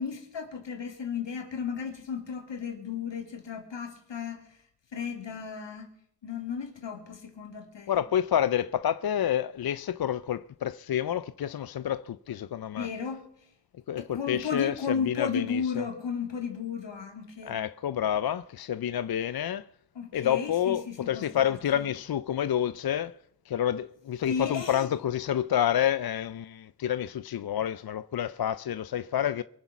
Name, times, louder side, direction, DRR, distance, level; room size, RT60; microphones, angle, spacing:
voice 1, 0.0-4.6 4.9-5.9 6.2-7.9 12.7-13.2 14.0-17.5 20.0-21.8 24.2-24.9, left 6 dB, 80° left, 2.6 m, -34 dB
voice 2, 7.9-12.9 13.9-15.8 17.5-19.7 20.1-23.2 23.5-29.4, left 10 dB, 60° left, 0.5 m, -29 dB
23.0 x 8.0 x 6.0 m
wide cardioid pair, 70°, 43 cm